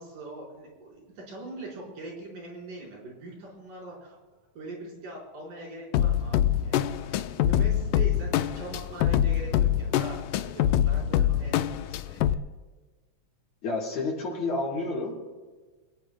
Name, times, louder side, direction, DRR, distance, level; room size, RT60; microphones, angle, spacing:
voice 1, 0.0-4.2 4.5-12.4, right 2 dB, 85° right, -3 dB, 6.4 m, -42 dB
sound 1, 5.9-12.3, left 11 dB, 90° left, 2.2 m, -25 dB
voice 2, 13.6-15.2, left 3 dB, 65° left, -3 dB, 5.8 m, -30 dB
28.0 x 17.5 x 2.2 m, 1.3 s
omnidirectional pair, 3.6 m